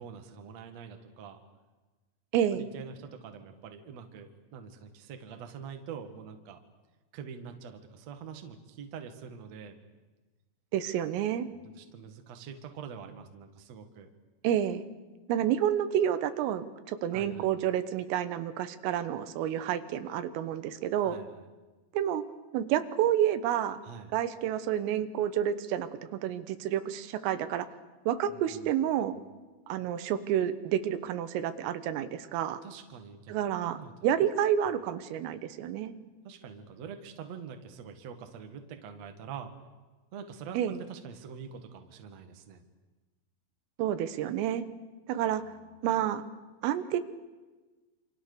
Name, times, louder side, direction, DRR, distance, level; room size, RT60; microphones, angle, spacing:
voice 1, 0.0-1.4 2.5-6.6 7.1-9.8 11.5-14.1 17.1-17.5 21.0-21.4 23.8-24.1 28.3-28.7 32.6-33.9 36.2-39.5 40.1-42.6 45.4-45.5, right 7 dB, 50° right, 6 dB, 2.1 m, -45 dB
voice 2, 2.3-2.7 10.7-11.5 14.4-14.9 15.3-21.2 21.9-22.2 22.5-23.8 24.1-25.9 26.2-27.7 28.1-29.1 29.7-32.6 33.3-33.8 34.0-35.9 40.6-40.8 43.8-44.7 45.1-45.4 45.8-46.2 46.6-47.0, right 10 dB, 85° right, 11 dB, 3.9 m, -29 dB
28.0 x 26.5 x 6.9 m, 1.2 s
omnidirectional pair, 5.8 m